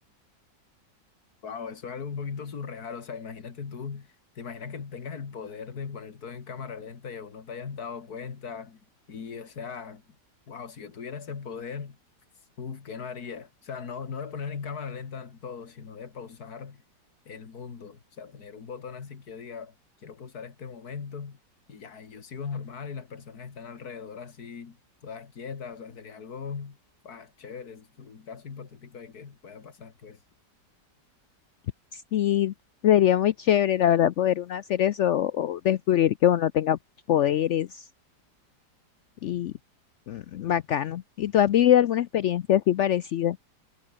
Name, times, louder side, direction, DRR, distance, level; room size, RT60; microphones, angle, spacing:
voice 1, 1.4-8.8 9.1-10.2 10.5-12.0 12.6-16.8 17.3-19.8 20.0-21.4 21.7-26.8 27.0-30.2, left 6 dB, 60° left, 2.5 m, -39 dB
voice 2, 31.9-32.5 32.8-36.8 37.1-37.8 39.2-39.5 40.1-43.4, left 11 dB, 85° left, 0.6 m, -23 dB
omnidirectional pair, 1.9 m